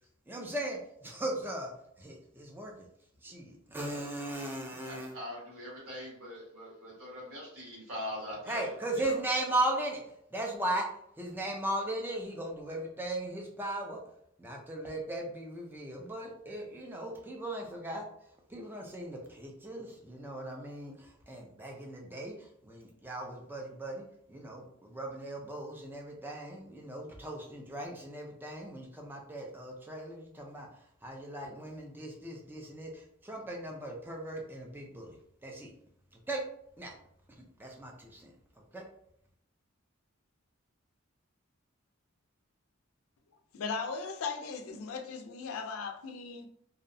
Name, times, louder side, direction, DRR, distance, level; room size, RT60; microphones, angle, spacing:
voice 1, 0.3-1.7 2.0-2.7 3.2-5.1 8.5-10.0 10.3-10.9 11.2-14.0 14.4-18.1 18.5-30.7 31.0-35.2 35.4-35.7 36.3-36.4 36.8-36.9 37.6-38.3 38.7-38.8, right 1 dB, 10° right, 0 dB, 0.4 m, -37 dB
voice 2, 4.8-8.7 9.0-9.2, left 1 dB, 85° right, -5 dB, 1.4 m, -42 dB
voice 3, 43.5-46.5, left 5 dB, 75° left, 5 dB, 0.4 m, -37 dB
2.6 x 2.1 x 2.5 m, 0.71 s
head